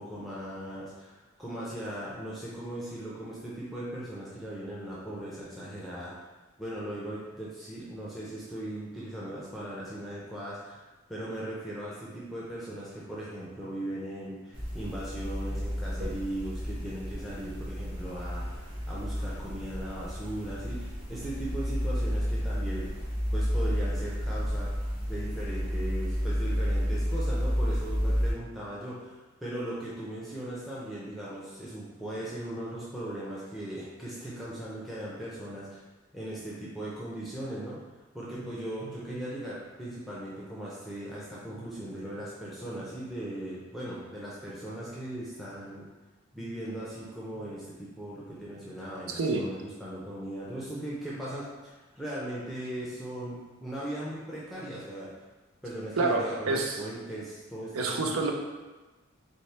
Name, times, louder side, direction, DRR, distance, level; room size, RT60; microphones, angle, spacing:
voice 1, 0.0-6.1 6.6-10.8 11.1-22.9 23.3-24.7 25.1-35.8 36.1-37.8 38.1-45.9 46.3-55.1 55.6-58.0, right 1 dB, ahead, -8 dB, 0.5 m, -38 dB
sound 1, 14.5-28.3, equal, 55° right, 1.5 m, -31 dB
voice 2, 49.1-49.5 56.0-56.8 57.7-58.3, right 3 dB, 90° right, 2 dB, 0.5 m, -28 dB
4.2 x 2.1 x 3.2 m, 1.2 s
head